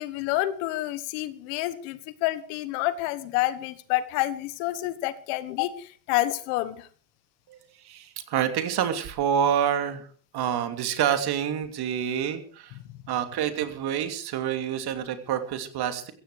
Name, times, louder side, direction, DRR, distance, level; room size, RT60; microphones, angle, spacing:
voice 1, 0.0-6.9, left 16 dB, 85° left, 14 dB, 1.6 m, -28 dB
voice 2, 7.8-10.1 10.3-12.8 13.1-16.1, right 9 dB, 55° right, 8 dB, 2.9 m, -27 dB
15.5 x 15.5 x 4.9 m, 0.44 s
cardioid pair, 110°, 45 cm